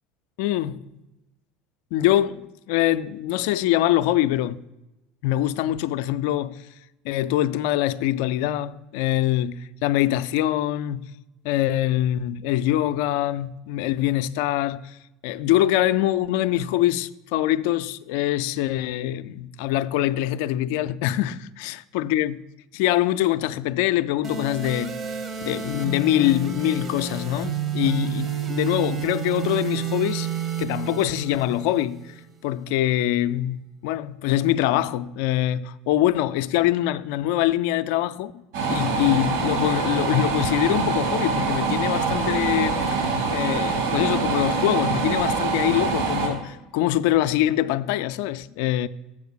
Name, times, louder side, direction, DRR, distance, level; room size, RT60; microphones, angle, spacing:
voice 1, 0.4-0.8 1.9-4.6 5.2-6.6 7.0-11.0 11.4-15.0 15.2-22.4 22.7-25.0 25.4-30.3 30.6-32.1 32.4-38.3 38.7-43.0 43.3-48.9, left 13 dB, 60° left, 0.3 m, -24 dB
sound 1, 24.2-32.2, right 8 dB, 35° right, 0.9 m, -30 dB
sound 2, 38.5-46.3, right 4 dB, 70° right, 3.4 m, -24 dB
7.4 x 4.9 x 6.2 m
figure-of-eight pair, 70°, 0 cm